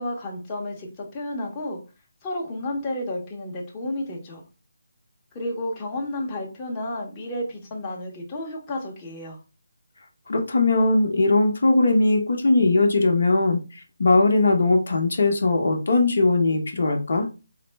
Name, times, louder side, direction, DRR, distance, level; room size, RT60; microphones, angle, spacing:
voice 1, 0.0-1.8 2.2-4.4 5.3-9.4, left 1 dB, 20° left, -2 dB, 0.8 m, -31 dB
voice 2, 10.3-17.3, left 2 dB, 65° left, 3 dB, 0.8 m, -20 dB
4.1 x 2.0 x 3.3 m, 0.31 s
figure-of-eight pair, 160°, 0 cm